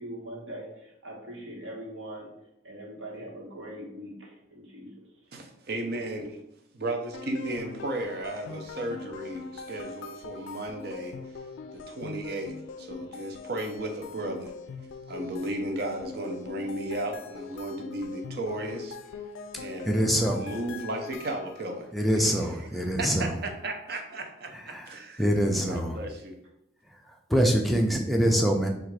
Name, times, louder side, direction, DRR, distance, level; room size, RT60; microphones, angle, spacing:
voice 1, 0.0-2.3 2.6-5.0, right 1 dB, 80° right, -2 dB, 1.2 m, -41 dB
voice 2, 5.3-6.4 6.7-14.5 15.1-19.2 19.5-20.0 20.3-26.4, right 1 dB, 50° right, 4 dB, 0.6 m, -35 dB
sound 1, 7.1-21.8, left 5 dB, 80° left, 0.3 m, -42 dB
voice 3, 19.9-20.4 21.9-23.3 24.7-24.9 25.2-26.0 27.1-28.7, equal, ahead, 1 dB, 0.4 m, -24 dB
3.7 x 2.4 x 4.6 m, 0.82 s
head